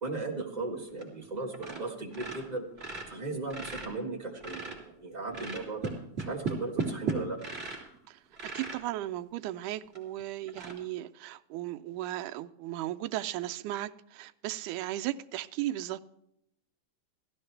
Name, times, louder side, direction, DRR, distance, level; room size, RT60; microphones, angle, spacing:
voice 1, 0.0-2.6 3.1-5.9 6.2-7.4, right 3 dB, 40° right, 0.5 m, -37 dB
sound 1, 0.9-1.3 1.5-1.8 2.1-4.9 5.3-8.0 8.3-8.8 9.4-9.5 9.9-10.0 10.5-10.7, right 4 dB, 20° right, 3.1 m, -36 dB
voice 2, 8.5-16.0, right 14 dB, 80° right, 2.1 m, -36 dB
16.5 x 13.5 x 3.3 m
omnidirectional pair, 3.6 m